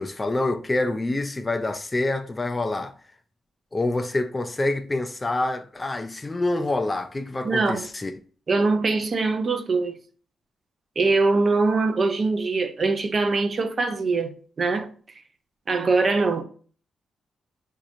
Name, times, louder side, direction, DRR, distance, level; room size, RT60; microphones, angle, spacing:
voice 1, 0.0-2.9 3.7-8.1, left 2 dB, 20° left, 0.4 m, -26 dB
voice 2, 7.4-7.9 8.5-10.0 11.0-14.9 15.7-16.4, right 3 dB, 35° right, 0.6 m, -22 dB
5.9 x 2.8 x 2.6 m
cardioid pair, 125°, 0 cm